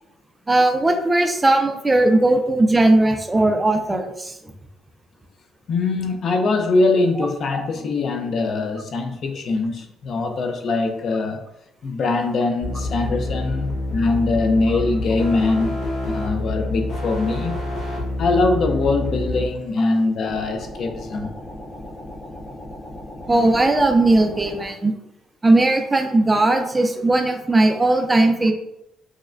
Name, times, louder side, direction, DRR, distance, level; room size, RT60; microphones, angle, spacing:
voice 1, 0.5-4.4 23.3-24.9 25.4-28.5, right 2 dB, 10° right, 5 dB, 0.4 m, -18 dB
voice 2, 5.7-11.4 11.8-15.7 16.1-17.5 18.2-21.3, left 3 dB, 45° left, 4 dB, 0.5 m, -22 dB
sound 1, 12.6-19.5, left 2 dB, 70° left, 1.3 m, -27 dB
sound 2, 20.2-24.7, left 1 dB, 20° left, 0.9 m, -37 dB
6.1 x 2.1 x 2.4 m, 0.82 s
cardioid pair, 160°, 0 cm